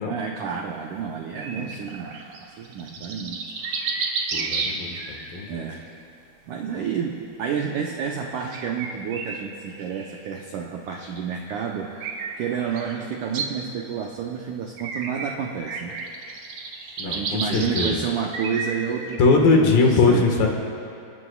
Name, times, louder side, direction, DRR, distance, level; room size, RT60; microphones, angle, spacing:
voice 1, 0.0-2.2 2.6-3.4 4.3-4.6 5.5-5.8 6.5-11.9 12.4-16.0 17.0-20.3, right 7 dB, 80° right, 0 dB, 1.8 m, -30 dB
sound 1, 1.4-5.3 5.7-6.0 8.5-10.2 11.8-13.5 14.8-15.3 15.7-18.0 18.3-19.2, right 4 dB, 60° right, 1.7 m, -31 dB
voice 2, 4.3-5.6 17.0-18.0 19.2-20.5, left 3 dB, 65° left, 1 dB, 3.2 m, -20 dB
28.5 x 18.5 x 2.4 m, 2.6 s
omnidirectional pair, 4.8 m